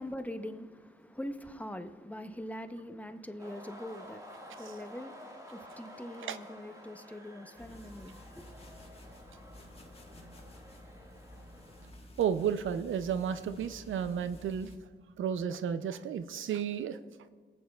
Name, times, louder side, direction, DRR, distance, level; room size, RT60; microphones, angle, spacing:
voice 1, 0.0-8.5, left 1 dB, 5° left, 0.7 m, -43 dB
sound 1, 3.4-11.9, equal, 15° right, 1.7 m, -51 dB
sound 2, 7.6-14.8, left 1 dB, 30° left, 1.4 m, -52 dB
voice 2, 12.2-14.7 15.2-17.0, right 8 dB, 85° right, 0.5 m, -32 dB
23.0 x 8.7 x 2.3 m
cardioid pair, 65°, 20 cm